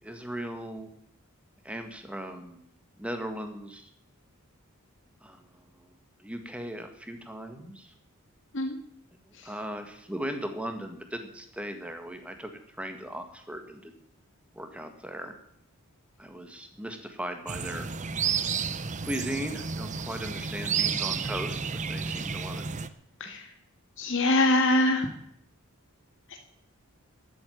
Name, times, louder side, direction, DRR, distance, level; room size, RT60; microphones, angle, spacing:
voice 1, 0.0-0.9 1.6-2.6 3.0-3.9 5.2-5.4 6.2-7.9 9.4-12.5 12.8-13.9 14.5-15.4 16.2-17.9 19.0-21.6 21.9-22.6, equal, 5° right, 6 dB, 1.7 m, -37 dB
sound 1, 17.5-22.9, right 6 dB, 35° right, 0.7 m, -31 dB
voice 2, 24.0-25.1, left 2 dB, 60° left, 4 dB, 1.9 m, -23 dB
13.5 x 8.2 x 9.2 m, 0.71 s
head